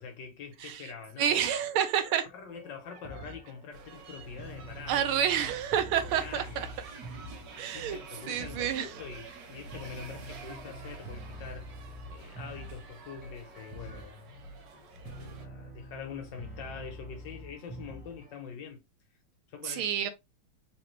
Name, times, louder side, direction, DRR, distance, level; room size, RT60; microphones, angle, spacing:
voice 1, 0.0-1.4 2.0-5.0 6.1-6.7 7.3-11.7 12.1-18.8 19.5-19.9, left 6 dB, 65° left, 1.5 m, -45 dB
voice 2, 1.2-2.3 4.9-6.7 7.6-8.0 8.3-8.9 19.6-20.1, right 9 dB, 90° right, 1.6 m, -29 dB
sound 1, 2.5-18.4, right 1 dB, 10° right, 0.3 m, -47 dB
sound 2, 3.7-15.5, right 3 dB, 60° right, 1.5 m, -48 dB
3.8 x 3.2 x 3.1 m
omnidirectional pair, 2.3 m